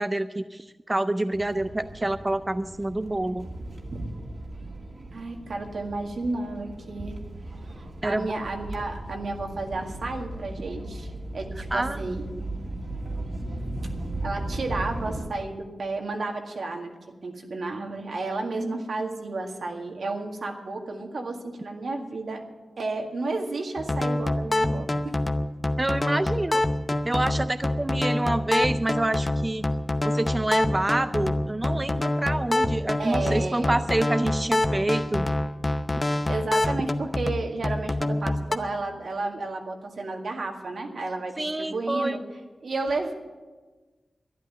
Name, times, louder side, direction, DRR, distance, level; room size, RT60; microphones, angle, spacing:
voice 1, 0.0-3.5 8.0-8.3 11.7-12.0 25.8-26.6 27.0-29.6 30.0-35.3 41.4-42.2, right 1 dB, 25° right, 10 dB, 0.5 m, -27 dB
sound 1, 1.3-15.3, right 1 dB, 55° right, 2.1 m, -37 dB
voice 2, 5.1-7.2 7.8-12.3 14.2-16.9 17.2-22.4 22.8-25.1 33.0-33.8 36.1-42.2 42.6-43.1, right 3 dB, 75° right, 3 dB, 1.9 m, -32 dB
sound 2, 23.8-38.6, left 1 dB, 30° left, 0.7 m, -26 dB
12.0 x 10.5 x 9.3 m, 1.3 s
wide cardioid pair, 80°, 0 cm